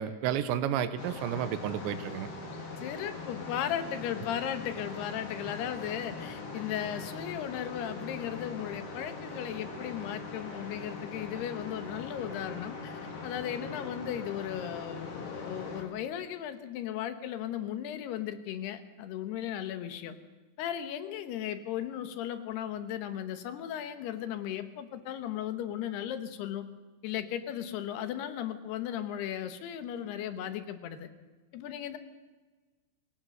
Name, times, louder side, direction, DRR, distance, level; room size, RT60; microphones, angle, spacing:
voice 1, 0.0-2.3, right 9 dB, 85° right, 12 dB, 3.2 m, -31 dB
sound 1, 1.0-15.8, left 3 dB, 40° left, 3.0 m, -41 dB
voice 2, 2.8-20.1 20.6-26.6 27.0-31.1 31.5-32.0, left 10 dB, 70° left, 10 dB, 3.0 m, -36 dB
24.5 x 17.5 x 6.5 m, 1.3 s
omnidirectional pair, 5.2 m